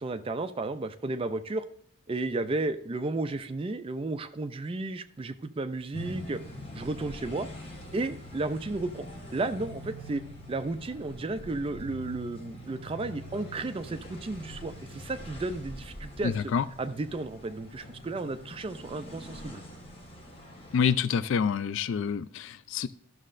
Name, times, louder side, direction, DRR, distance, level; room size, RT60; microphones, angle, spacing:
voice 1, 0.0-1.6 2.1-6.4 6.7-7.5 7.9-9.1 9.3-10.2 10.5-16.5 16.8-19.6, right 2 dB, 25° right, 10 dB, 0.3 m, -33 dB
sound 1, 5.9-20.9, equal, 25° left, 1.1 m, -44 dB
voice 2, 16.2-16.7 20.7-22.9, left 6 dB, 60° left, 14 dB, 0.3 m, -27 dB
13.0 x 6.4 x 2.5 m, 0.64 s
head